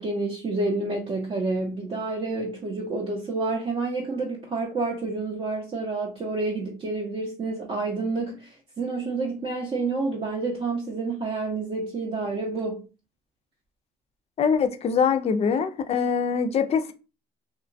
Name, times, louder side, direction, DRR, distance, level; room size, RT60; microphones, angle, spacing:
voice 1, 0.0-12.8, right 3 dB, 35° right, -2 dB, 0.6 m, -29 dB
voice 2, 14.4-16.9, left 6 dB, 40° left, 9 dB, 0.4 m, -23 dB
2.9 x 2.2 x 2.5 m, 0.32 s
cardioid pair, 110°, 17 cm